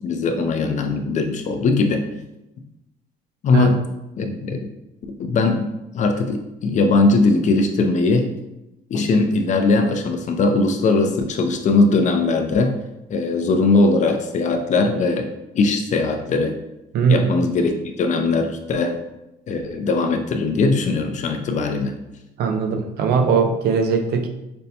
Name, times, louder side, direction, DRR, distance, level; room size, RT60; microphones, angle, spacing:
voice 1, 0.0-2.0 3.4-3.8 4.2-4.7 5.2-5.7 5.9-8.3 8.9-12.8 13.1-16.6 17.1-19.0 19.5-22.0, left 3 dB, 45° left, 6 dB, 0.5 m, -20 dB
voice 2, 16.9-17.3 22.4-24.3, right 5 dB, 70° right, 4 dB, 0.6 m, -19 dB
5.2 x 2.2 x 2.8 m, 0.91 s
cardioid pair, 110°, 17 cm